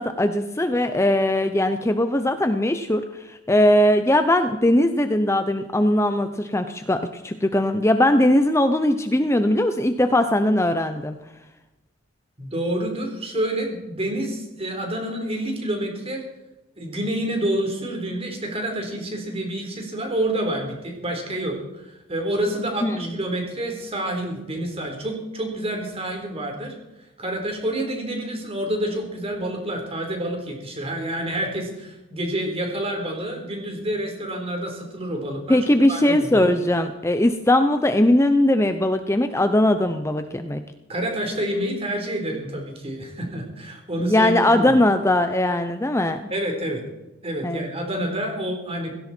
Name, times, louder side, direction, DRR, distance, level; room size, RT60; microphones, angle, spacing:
voice 1, 0.0-11.2 22.8-23.2 35.5-40.6 44.0-46.3 47.4-47.7, left 1 dB, 15° left, 8 dB, 0.7 m, -20 dB
voice 2, 12.4-16.2 16.8-26.7 27.2-35.6 35.9-36.5 40.9-44.7 46.3-46.8 47.2-48.9, right 1 dB, 30° right, 3 dB, 4.0 m, -28 dB
17.0 x 16.5 x 4.5 m, 0.99 s
head